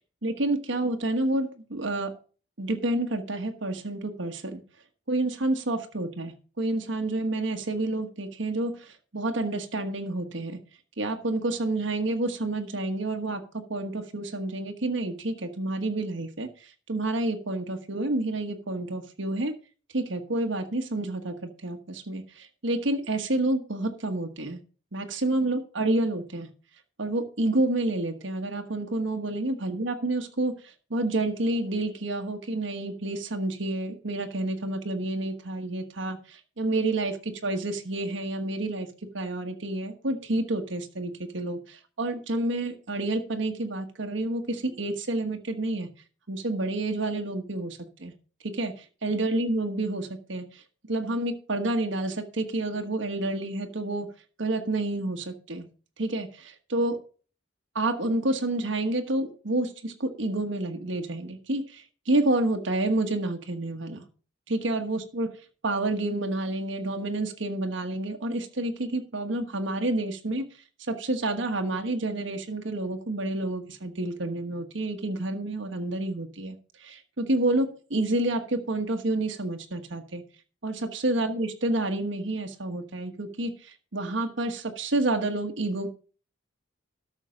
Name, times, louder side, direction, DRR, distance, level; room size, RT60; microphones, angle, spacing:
voice 1, 0.2-2.1 2.6-4.6 5.1-10.6 11.0-13.4 13.7-19.5 19.9-24.6 24.9-26.5 27.0-38.9 39.1-45.9 46.3-48.1 48.4-48.7 49.0-50.6 50.9-54.1 54.4-55.7 56.0-57.0 57.7-64.0 64.5-65.4 65.6-70.4 70.9-80.2 80.6-85.9, right 2 dB, 75° right, 5 dB, 1.3 m, -29 dB
13.0 x 6.5 x 5.1 m, 0.37 s
head